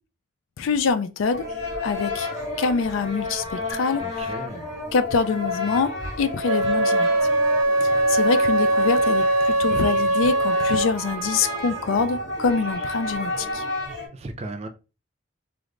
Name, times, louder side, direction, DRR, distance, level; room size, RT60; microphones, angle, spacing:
voice 1, 0.6-1.5 1.8-2.3 2.6-4.4 4.9-7.1 7.8-13.7, left 5 dB, 80° left, 0.4 m, -25 dB
sound 1, 1.3-14.1, left 2 dB, 40° left, 1.6 m, -31 dB
voice 2, 4.0-4.8 14.1-14.7, right 2 dB, 30° right, 0.4 m, -36 dB
Wind instrument woodwind instrument, 6.5-11.0, right 1 dB, 85° right, 0.5 m, -21 dB
3.2 x 2.0 x 3.7 m
head